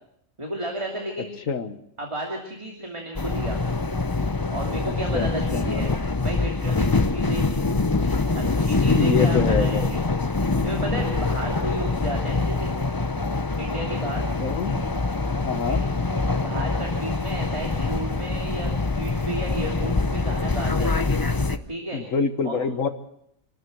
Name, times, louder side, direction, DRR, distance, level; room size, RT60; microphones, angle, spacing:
voice 1, 0.4-1.4 2.0-3.6 4.5-5.9 6.2-7.5 8.4-10.2 10.6-12.7 13.6-14.3 15.7-15.9 16.3-21.1 21.7-22.0 22.4-22.6, right 1 dB, 20° right, 0 dB, 2.8 m, -33 dB
voice 2, 1.5-1.8 4.8-5.9 9.0-9.9 14.4-14.8 15.5-15.8 21.9-22.9, left 5 dB, 75° left, 10 dB, 1.7 m, -26 dB
sound 1, 3.2-21.6, left 3 dB, 20° left, 0.6 m, -24 dB
27.0 x 12.5 x 7.8 m, 0.73 s
omnidirectional pair, 1.4 m